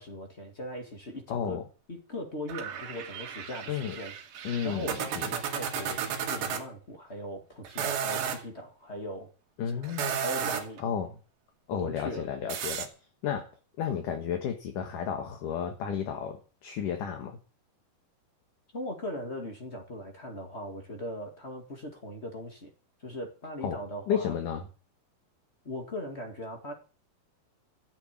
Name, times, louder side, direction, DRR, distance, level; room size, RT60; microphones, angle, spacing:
voice 1, 0.0-1.6 1.9-4.1 4.6-9.3 9.8-10.8 11.7-12.3 18.7-22.7 23.0-24.4 25.6-26.7, equal, 30° left, 4 dB, 1.3 m, -39 dB
voice 2, 1.3-1.6 3.7-4.0 4.4-5.3 9.6-10.2 10.8-11.1 11.7-12.9 13.2-13.5 13.8-17.4 23.6-23.8 24.1-24.6, left 8 dB, 60° left, 5 dB, 2.7 m, -32 dB
sound 1, 2.5-6.6 7.6-8.4 9.8-10.8 12.5-12.9, right 8 dB, 90° right, 4.2 m, -33 dB
14.5 x 8.1 x 9.1 m, 0.37 s
omnidirectional pair, 4.9 m